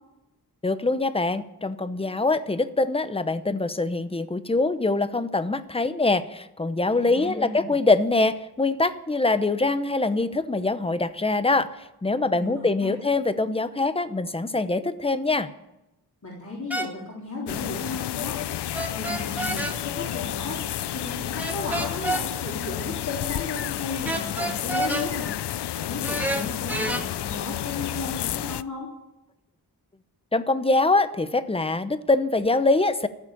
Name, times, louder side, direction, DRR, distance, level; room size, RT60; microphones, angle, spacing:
voice 1, 0.6-11.7 12.0-15.5 30.3-33.1, left 3 dB, 15° left, 12 dB, 0.7 m, -24 dB
voice 2, 6.9-7.7 12.2-12.9 16.2-18.4 18.9-20.6 20.9-25.3 25.7-28.9, left 3 dB, 45° left, -4 dB, 3.6 m, -35 dB
sound 1, 16.7-16.9 18.7-19.7 21.4-22.2 24.0-25.1 26.0-27.0, right 1 dB, 5° right, 1.8 m, -28 dB
sound 2, 17.5-28.6, left 12 dB, 90° left, 0.5 m, -31 dB
15.0 x 7.4 x 9.9 m, 0.91 s
wide cardioid pair, 125°, 39 cm